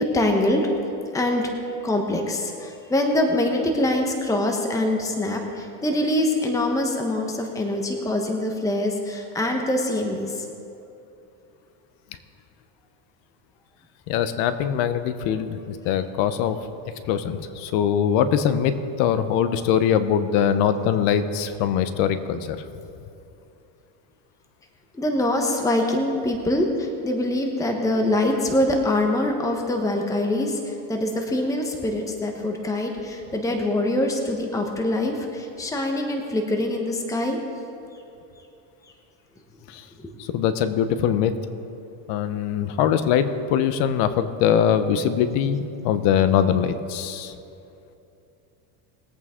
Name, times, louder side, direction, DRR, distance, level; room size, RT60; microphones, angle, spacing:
voice 1, 0.1-0.7 1.1-1.5 1.8-10.5 24.9-37.4 40.0-40.1, left 1 dB, 5° left, 3 dB, 1.1 m, -24 dB
voice 2, 14.1-16.6 17.1-22.6 39.7-39.8 40.2-41.3 42.1-47.3, left 8 dB, 70° left, 11 dB, 1.0 m, -22 dB
21.0 x 8.5 x 3.7 m, 2.7 s
supercardioid pair, 130°, 48 cm